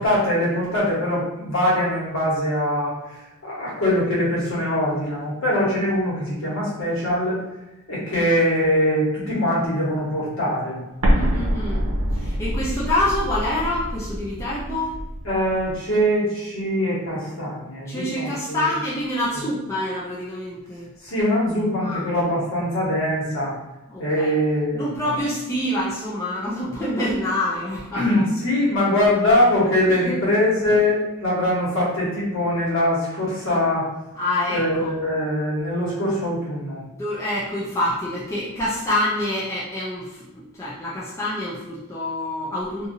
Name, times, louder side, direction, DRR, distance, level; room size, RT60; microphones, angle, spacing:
voice 1, 0.0-7.4 7.9-10.8 15.2-18.7 19.3-19.4 21.0-23.6 24.0-25.1 27.9-33.9 34.5-36.8, left 1 dB, 60° left, -7 dB, 1.3 m, -22 dB
Explosion, 11.0-15.8, equal, 90° right, 0.7 m, -25 dB
voice 2, 11.1-11.8 12.1-14.9 17.9-20.9 21.8-22.0 23.9-24.3 24.7-28.2 30.1-30.2 34.1-34.9 36.9-40.2 40.6-42.9, left 1 dB, 15° left, -8 dB, 0.4 m, -26 dB
2.6 x 2.6 x 2.7 m, 0.96 s
head